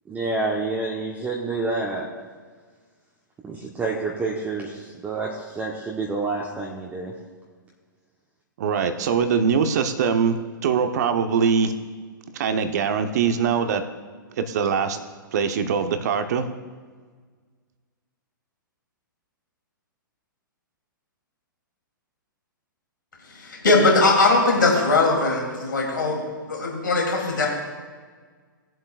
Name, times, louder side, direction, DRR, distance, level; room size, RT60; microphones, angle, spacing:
voice 1, 0.1-2.1 3.4-7.1, right 3 dB, 15° right, -3 dB, 1.1 m, -28 dB
voice 2, 8.6-10.4 10.6-11.7 12.3-13.8 14.4-15.0 15.3-16.5, right 6 dB, 50° right, 8 dB, 0.9 m, -22 dB
voice 3, 23.4-27.5, left 3 dB, 70° left, -2 dB, 3.0 m, -20 dB
19.5 x 7.6 x 2.5 m, 1.5 s
figure-of-eight pair, 110°, 11 cm